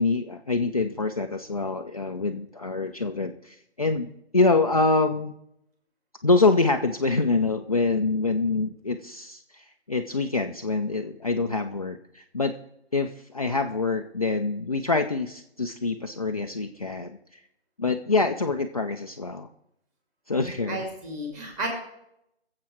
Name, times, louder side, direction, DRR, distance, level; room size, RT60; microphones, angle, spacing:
voice 1, 0.0-5.3 6.2-12.6 12.9-17.2 17.8-19.5 20.3-20.8, left 3 dB, 35° left, 3 dB, 0.5 m, -25 dB
voice 2, 20.7-21.7, right 1 dB, 15° right, 0 dB, 2.4 m, -32 dB
22.5 x 7.6 x 4.4 m, 0.79 s
figure-of-eight pair, 160°, 34 cm